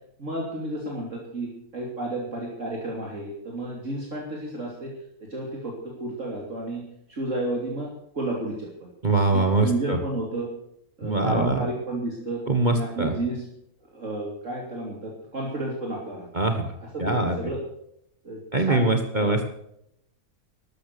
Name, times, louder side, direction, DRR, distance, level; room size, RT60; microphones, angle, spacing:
voice 1, 0.2-4.9 5.3-6.8 7.1-8.9 9.3-10.5 11.0-12.4 12.7-13.4 13.9-16.3 16.9-17.6 18.2-19.3, right 1 dB, 50° right, -2 dB, 3.3 m, -31 dB
voice 2, 9.0-10.0 11.0-11.6 12.5-13.2 16.3-16.7 17.0-17.4 18.5-19.5, right 2 dB, 30° right, 5 dB, 1.5 m, -23 dB
13.0 x 12.5 x 6.8 m, 0.76 s
omnidirectional pair, 1.6 m